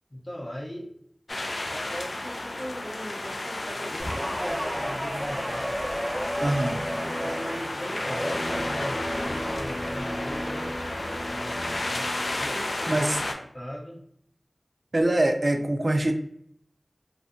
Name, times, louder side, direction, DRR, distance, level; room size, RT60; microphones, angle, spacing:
voice 1, 0.1-0.9 1.7-5.8 7.2-10.7 11.2-13.1 13.5-14.0, equal, 40° left, -1 dB, 0.5 m, -39 dB
sound 1, 1.3-13.3, left 1 dB, 85° left, 0.3 m, -33 dB
Guitar, 4.0-12.6 13.0-13.3, equal, ahead, 0.8 m, -33 dB
voice 2, 6.4-6.8 12.9-13.2 14.9-16.1, right 1 dB, 60° right, 5 dB, 0.3 m, -23 dB
2.6 x 2.2 x 2.5 m, 0.68 s
wide cardioid pair, 45°, 0 cm